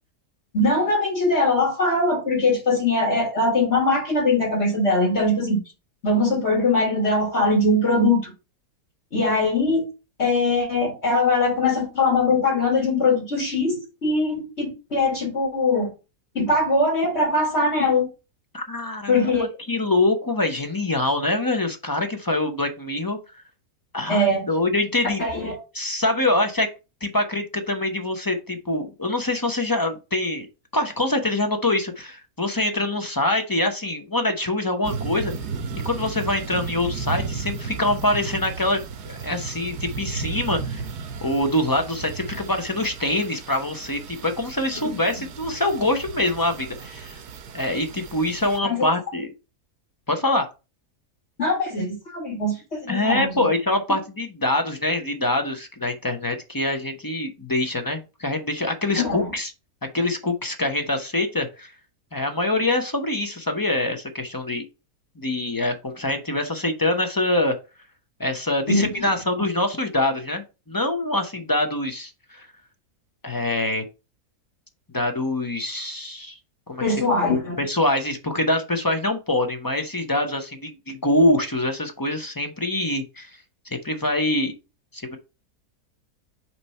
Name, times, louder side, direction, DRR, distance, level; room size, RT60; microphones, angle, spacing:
voice 1, 0.5-5.6 6.0-8.3 9.1-9.9 10.2-15.9 16.4-18.1 19.1-19.4 24.1-24.4 25.2-25.6 44.8-45.0 48.6-48.9 51.4-53.5 59.0-59.3 68.7-68.9 76.8-77.6, left 2 dB, 45° left, 1.9 m, -21 dB
voice 2, 18.5-23.2 23.9-25.2 25.7-26.7 27.0-30.5 30.7-35.3 35.8-40.8 41.2-47.2 47.5-49.3 50.1-50.5 52.9-59.5 59.8-61.7 62.1-64.6 65.2-67.6 68.2-72.5 73.2-73.8 74.9-76.4 76.7-77.0 77.6-83.4 83.7-84.5 84.9-85.2, left 2 dB, 25° left, 0.4 m, -24 dB
sound 1, 34.8-48.6, right 5 dB, 85° right, 1.3 m, -34 dB
5.9 x 3.2 x 5.4 m
omnidirectional pair, 1.7 m